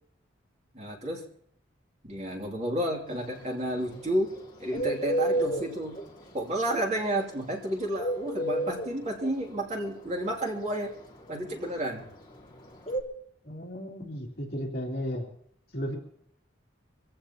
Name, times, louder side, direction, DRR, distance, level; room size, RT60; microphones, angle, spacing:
voice 1, 0.7-1.3 2.1-6.0 6.3-11.0 11.3-12.1, right 1 dB, 35° right, 0 dB, 2.8 m, -31 dB
Bird, 3.1-13.0, right 1 dB, 20° left, 2.2 m, -31 dB
voice 2, 13.4-15.3 15.7-16.0, equal, 50° left, -2 dB, 3.0 m, -34 dB
24.5 x 16.0 x 3.0 m, 0.66 s
head